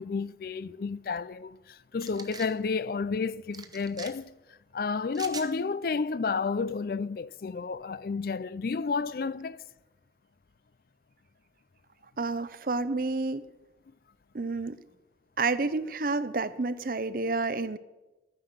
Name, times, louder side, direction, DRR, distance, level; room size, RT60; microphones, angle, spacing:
voice 1, 0.0-4.3 4.7-9.6, left 4 dB, 55° left, 0.4 m, -31 dB
sound 1, 2.0-2.5 3.5-4.1 5.1-5.5, right 5 dB, 20° right, 0.8 m, -42 dB
voice 2, 12.2-13.5 14.3-14.8 15.4-17.8, right 3 dB, 50° right, 0.6 m, -29 dB
14.0 x 9.8 x 6.6 m
head